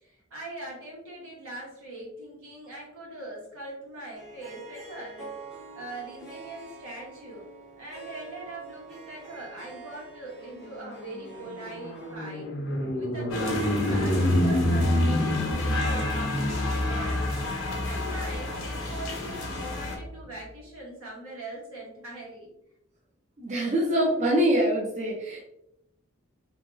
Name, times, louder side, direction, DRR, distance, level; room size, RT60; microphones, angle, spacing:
voice 1, 0.0-5.3 5.7-7.4 7.8-12.5 12.9-17.2 17.8-22.5, right 2 dB, 80° right, -4 dB, 1.2 m, -41 dB
Harp, 4.1-12.1, right 3 dB, 5° right, 0.8 m, -46 dB
sound 1, 10.5-20.1, left 1 dB, 55° left, 0.5 m, -28 dB
sound 2, 13.3-20.0, left 3 dB, 90° left, 0.8 m, -33 dB
voice 2, 23.4-25.5, equal, 35° right, -3 dB, 0.4 m, -24 dB
2.8 x 2.5 x 2.3 m, 0.82 s
head